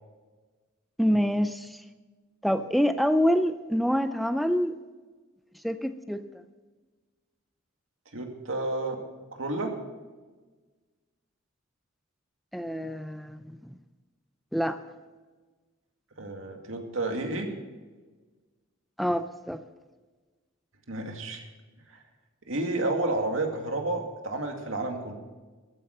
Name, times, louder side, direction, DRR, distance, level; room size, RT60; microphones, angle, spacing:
voice 1, 1.0-1.8 2.4-4.7 5.6-6.3 12.5-13.6 14.5-14.8 19.0-19.6, equal, ahead, 10 dB, 0.5 m, -26 dB
voice 2, 8.1-9.0 9.3-9.8 16.2-17.5 20.9-21.4 21.9-22.0 22.5-25.1, right 2 dB, 80° right, 3 dB, 2.3 m, -31 dB
14.5 x 10.0 x 6.6 m, 1.3 s
head